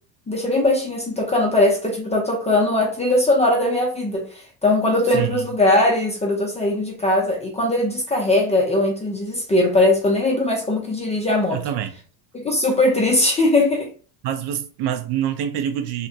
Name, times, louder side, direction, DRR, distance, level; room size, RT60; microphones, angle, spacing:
voice 1, 0.3-11.6 12.3-13.9, left 2 dB, 15° left, 0.4 m, -20 dB
voice 2, 5.1-5.5 11.5-11.9 14.2-16.1, right 10 dB, 55° right, 0.6 m, -25 dB
2.3 x 2.1 x 2.6 m
supercardioid pair, 95°, 50 cm